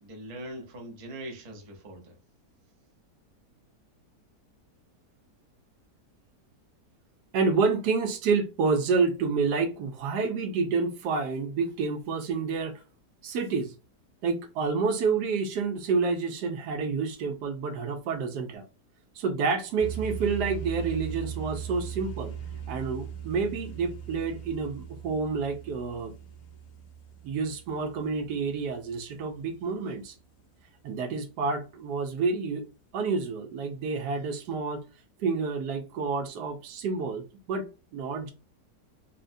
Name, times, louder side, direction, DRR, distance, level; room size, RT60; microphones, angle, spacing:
voice 1, 0.0-2.2, right 1 dB, 45° right, 0.4 m, -41 dB
voice 2, 7.3-12.8 13.2-13.7 14.2-18.7 19.2-22.3 22.7-26.1 27.2-30.1 30.8-32.7 32.9-34.9 35.2-38.3, right 4 dB, 80° right, 1.2 m, -29 dB
sound 1, 19.8-29.3, right 8 dB, 75° left, 1.3 m, -39 dB
3.7 x 2.1 x 2.6 m
omnidirectional pair, 1.8 m